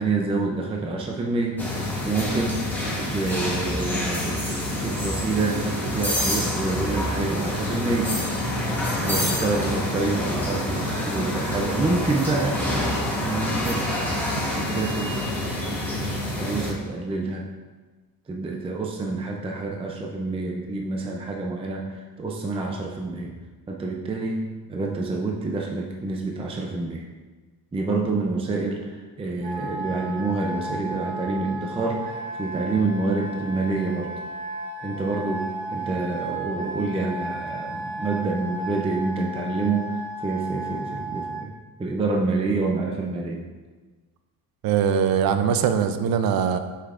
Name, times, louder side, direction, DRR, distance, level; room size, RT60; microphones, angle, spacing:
voice 1, 0.0-1.6 2.0-2.6 3.0-8.2 9.0-12.6 13.2-13.8 14.5-15.2 16.4-17.4 18.3-23.3 23.7-24.4 24.7-27.1 27.7-34.1 34.8-41.5 41.8-43.4, right 3 dB, 15° right, 0 dB, 0.5 m, -27 dB
sound 1, 1.6-16.7, left 1 dB, 5° left, 1.1 m, -27 dB
Wind instrument woodwind instrument, 29.4-41.4, right 2 dB, 85° right, 1.2 m, -34 dB
voice 2, 44.6-46.6, right 7 dB, 70° right, 9 dB, 0.6 m, -21 dB
8.0 x 5.6 x 2.5 m, 1.3 s
cardioid pair, 160°, 37 cm